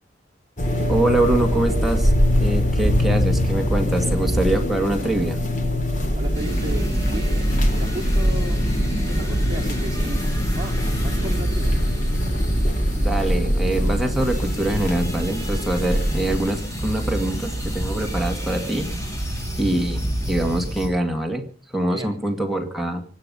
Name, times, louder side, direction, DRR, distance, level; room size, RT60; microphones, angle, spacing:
sound 1, 0.6-16.4, equal, 45° left, 2.8 m, -23 dB
voice 1, 0.9-5.4 13.0-18.9 19.6-21.4 21.7-23.0, right 1 dB, ahead, 2 dB, 2.1 m, -24 dB
voice 2, 6.1-8.6 9.1-10.2 10.5-11.8 21.9-22.2, right 1 dB, 25° right, -1 dB, 3.8 m, -35 dB
sound 2, 6.3-20.9, right 1 dB, 20° left, 6.0 m, -27 dB
25.0 x 9.2 x 5.6 m, 0.41 s
head